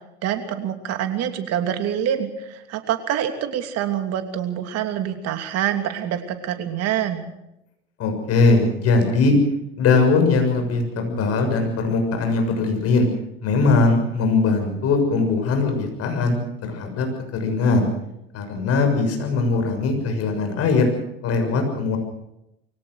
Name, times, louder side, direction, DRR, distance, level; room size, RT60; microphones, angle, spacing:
voice 1, 0.2-7.3, right 10 dB, 55° right, 7 dB, 2.9 m, -26 dB
voice 2, 8.0-9.4 9.8-13.1 13.4-16.4 16.7-17.9 18.3-20.9 21.2-22.0, left 3 dB, 55° left, 4 dB, 6.9 m, -20 dB
23.5 x 17.0 x 6.5 m, 0.86 s
hypercardioid pair, 80°, 30 cm